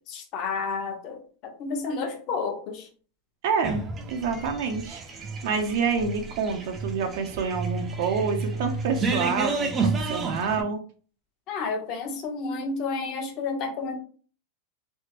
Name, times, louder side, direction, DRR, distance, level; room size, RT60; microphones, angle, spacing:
voice 1, 0.1-2.9 11.5-14.0, left 4 dB, 40° left, 3 dB, 0.8 m, -31 dB
voice 2, 3.4-10.8, right 5 dB, 60° right, 4 dB, 0.6 m, -28 dB
sound 1, 3.6-10.6, right 3 dB, 20° right, 0.5 m, -30 dB
3.4 x 2.5 x 2.9 m, 0.40 s
supercardioid pair, 150°, 0 cm